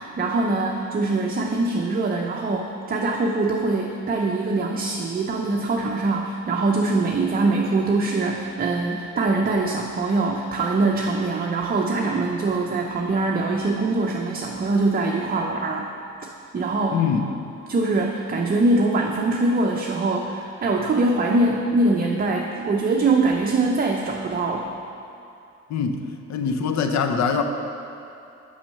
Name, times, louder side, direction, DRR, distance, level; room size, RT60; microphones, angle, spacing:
voice 1, 0.0-15.9 16.5-17.0 17.7-24.7, right 2 dB, 30° right, 0 dB, 0.6 m, -23 dB
voice 2, 16.9-17.3 25.7-26.0 26.3-27.4, left 6 dB, 65° left, 6 dB, 0.7 m, -23 dB
6.0 x 5.5 x 6.4 m, 2.7 s
cardioid pair, 90°, 30 cm